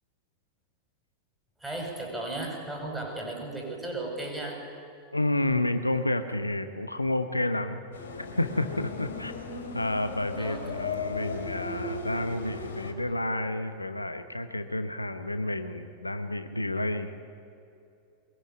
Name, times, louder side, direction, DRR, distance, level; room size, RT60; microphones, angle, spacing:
voice 1, 1.6-4.6 10.4-10.8, right 2 dB, 5° right, 0 dB, 7.0 m, -35 dB
voice 2, 5.1-7.8 8.1-9.3 9.7-17.1, left 1 dB, 85° left, 9 dB, 1.1 m, -30 dB
sound 1, 7.9-12.9, left 3 dB, 65° left, 3.4 m, -36 dB
22.5 x 21.5 x 9.7 m, 2.6 s
figure-of-eight pair, 85°, 0 cm